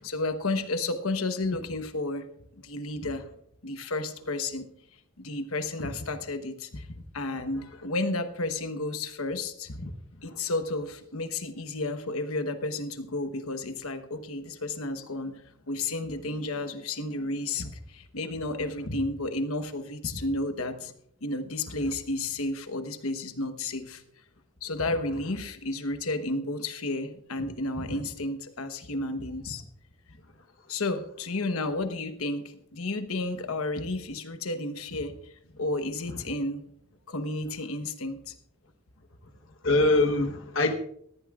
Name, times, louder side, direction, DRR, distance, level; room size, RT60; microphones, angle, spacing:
voice 1, 0.0-2.2 2.6-3.2 3.6-4.7 5.2-6.9 7.1-9.7 10.2-15.3 15.7-20.9 21.2-24.0 24.6-29.6 30.7-35.1 35.6-36.6 37.1-38.3, left 2 dB, 90° left, 9 dB, 1.1 m, -32 dB
voice 2, 39.6-40.7, left 2 dB, 65° left, 4 dB, 1.1 m, -24 dB
19.0 x 14.5 x 2.4 m, 0.69 s
head